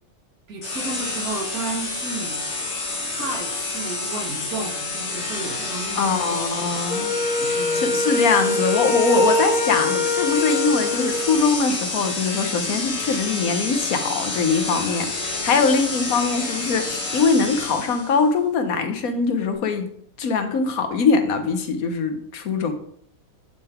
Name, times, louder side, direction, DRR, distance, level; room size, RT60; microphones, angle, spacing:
voice 1, 0.5-2.4 3.0-6.7 7.1-7.9, right 2 dB, 80° right, 1 dB, 2.0 m, -33 dB
sound 1, 0.6-18.2, left 3 dB, 50° left, 1.6 m, -29 dB
voice 2, 6.0-19.9 20.2-22.7, left 4 dB, 75° left, 7 dB, 1.4 m, -22 dB
Wind instrument woodwind instrument, 6.9-11.5, left 1 dB, 30° left, 1.3 m, -23 dB
10.5 x 3.9 x 4.4 m, 0.66 s
omnidirectional pair, 1.5 m